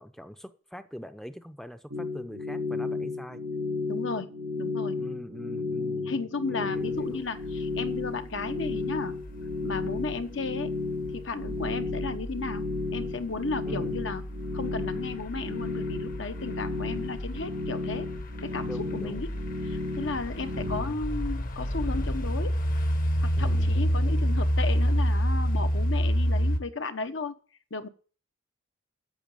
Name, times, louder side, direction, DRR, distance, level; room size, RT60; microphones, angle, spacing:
voice 1, 0.0-3.4 5.0-6.1 6.5-7.2 13.6-14.0 18.6-19.3 20.5-20.9 23.4-23.8, equal, ahead, 0.6 m, -43 dB
sound 1, 1.9-20.8, left 3 dB, 90° right, 2.5 m, -33 dB
voice 2, 3.9-5.0 6.0-9.2 9.6-10.7 11.1-12.6 12.9-14.2 14.5-18.1 18.4-19.3 19.6-22.5 23.2-27.3 27.7-27.9, left 3 dB, 70° left, 1.1 m, -34 dB
sound 2, 7.5-26.6, equal, 45° left, 1.1 m, -29 dB
10.5 x 7.1 x 8.8 m
head